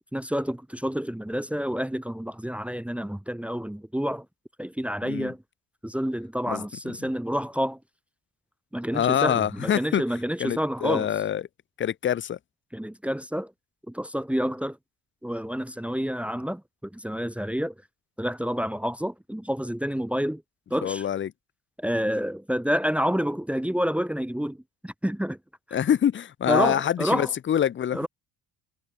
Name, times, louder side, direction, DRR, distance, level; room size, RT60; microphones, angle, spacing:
voice 1, 0.1-4.3 4.6-5.4 5.8-7.8 8.7-11.1 12.7-13.5 13.9-14.8 15.2-17.7 18.2-20.4 20.7-21.1 21.8-25.4 25.7-25.8 26.5-27.3 27.9-28.1, equal, 5° right, 1.8 m, -28 dB
voice 2, 5.0-5.3 6.5-6.6 8.9-10.0 10.4-11.4 11.8-12.4 20.8-21.3 25.7-28.1, left 9 dB, 30° left, 0.6 m, -25 dB
cardioid pair, 145°, 42 cm